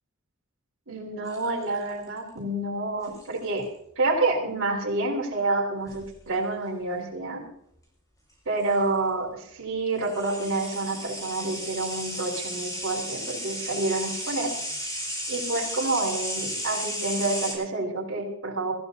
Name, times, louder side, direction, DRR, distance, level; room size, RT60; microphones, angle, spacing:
voice 1, 0.9-3.6 4.0-7.4 8.5-14.5 15.3-18.7, right 2 dB, 60° right, -4 dB, 4.4 m, -28 dB
sound 1, 1.3-2.0 3.0-3.4 5.9-6.1 8.3-8.4 8.6-8.7 10.0-17.5, equal, 15° left, 5.6 m, -34 dB
26.0 x 14.5 x 2.7 m, 0.72 s
head